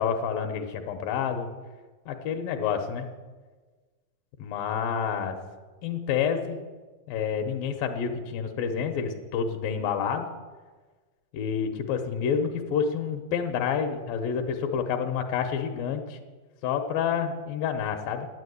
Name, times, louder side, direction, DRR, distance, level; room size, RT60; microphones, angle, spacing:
voice 1, 0.0-1.5 2.1-3.1 4.4-5.4 5.8-6.6 7.1-10.3 11.3-16.2 16.6-18.3, left 7 dB, 90° left, 5 dB, 2.7 m, -28 dB
10.5 x 9.2 x 8.2 m, 1.3 s
omnidirectional pair, 4.0 m